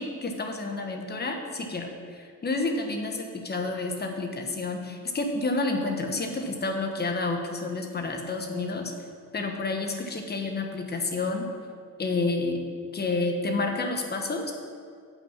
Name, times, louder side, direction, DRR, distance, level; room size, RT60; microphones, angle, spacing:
voice 1, 0.0-8.9 9.3-11.5 12.0-12.6 12.9-14.5, left 3 dB, 35° left, 3 dB, 1.3 m, -29 dB
8.0 x 5.8 x 5.9 m, 2.1 s
cardioid pair, 90°, 30 cm